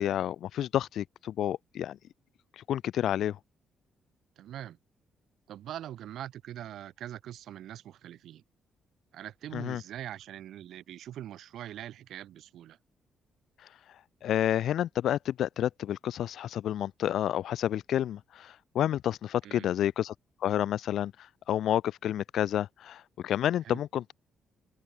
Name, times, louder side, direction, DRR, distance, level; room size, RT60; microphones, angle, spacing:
voice 1, 0.0-2.0 2.6-3.4 9.5-9.8 14.2-20.1 20.4-24.1, left 11 dB, 75° left, 0.6 m, -30 dB
voice 2, 4.4-4.8 5.5-8.4 9.1-12.8 19.4-19.7 23.6-23.8, right 12 dB, 75° right, 1.4 m, -42 dB
open air
cardioid pair, 90°, 0 cm